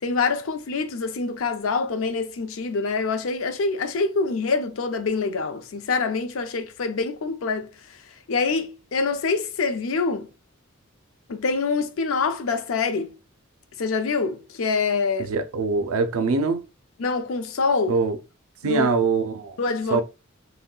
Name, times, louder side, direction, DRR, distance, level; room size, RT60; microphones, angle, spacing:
voice 1, 0.0-7.7 8.3-10.3 11.3-13.1 13.8-15.3 17.0-17.9 18.6-18.9 19.6-20.0, left 4 dB, 70° left, 0.5 m, -25 dB
voice 2, 15.3-16.6 17.9-18.2 18.6-19.6 19.9-20.0, right 4 dB, 90° right, 0.4 m, -23 dB
3.6 x 2.1 x 2.3 m
head